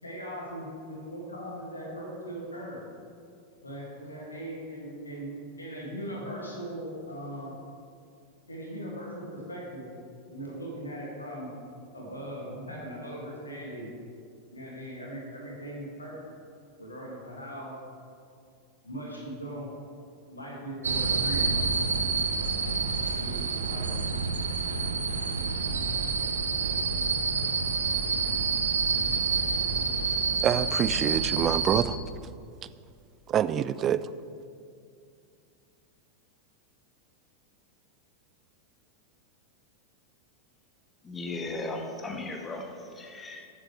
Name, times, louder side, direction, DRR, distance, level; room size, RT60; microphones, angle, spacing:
voice 1, 0.0-2.8 3.6-5.3 5.6-7.6 8.5-9.9 10.3-11.5 11.9-13.9 14.5-16.1 16.8-17.7 18.8-19.7 20.3-21.5 23.2-24.1, right 1 dB, 80° left, -3 dB, 2.5 m, -39 dB
sound 1, 20.8-31.8, right 4 dB, 70° right, 0.7 m, -28 dB
voice 2, 30.4-32.0 33.3-34.1, right 9 dB, 30° right, 15 dB, 0.3 m, -26 dB
voice 3, 41.1-43.5, left 2 dB, 15° left, 3 dB, 1.2 m, -36 dB
14.5 x 7.4 x 3.5 m, 2.4 s
figure-of-eight pair, 90°, 0 cm